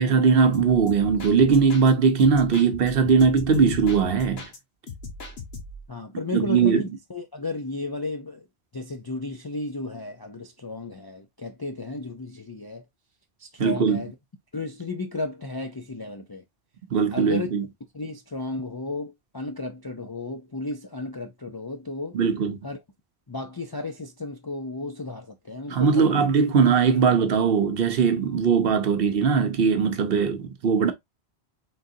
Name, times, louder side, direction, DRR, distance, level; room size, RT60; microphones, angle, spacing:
voice 1, 0.0-4.4 6.3-6.8 13.6-14.0 16.9-17.6 22.1-22.6 25.7-30.9, right 5 dB, 65° right, 0.9 m, -20 dB
sound 1, 0.5-1.9 2.2-4.6 4.9-5.9, left 3 dB, 70° left, 1.3 m, -39 dB
voice 2, 5.9-8.4 8.7-12.8 13.4-14.1 14.5-16.4 17.1-17.5 17.9-22.2 22.6-22.8 23.3-26.2, left 2 dB, 35° left, 0.3 m, -34 dB
3.8 x 3.8 x 2.6 m
omnidirectional pair, 1.1 m